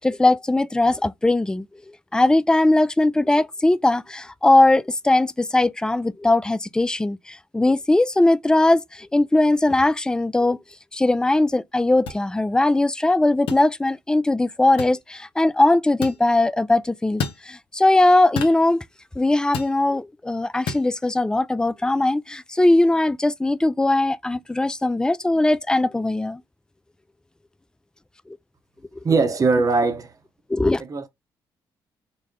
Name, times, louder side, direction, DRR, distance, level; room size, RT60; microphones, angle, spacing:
voice 1, 0.0-1.7 2.1-10.6 10.9-18.8 19.2-26.4 30.5-30.8, left 2 dB, 10° left, 0.3 m, -20 dB
sound 1, 12.1-12.2 13.5-13.7 14.8-15.0 16.0-16.2 17.2-17.4 18.4-18.6 19.5-19.8 20.7-20.9, left 5 dB, 80° left, 0.7 m, -29 dB
voice 2, 29.0-30.2 30.8-31.1, right 4 dB, 40° right, 0.8 m, -20 dB
3.9 x 2.1 x 3.6 m
supercardioid pair, 65°, 9 cm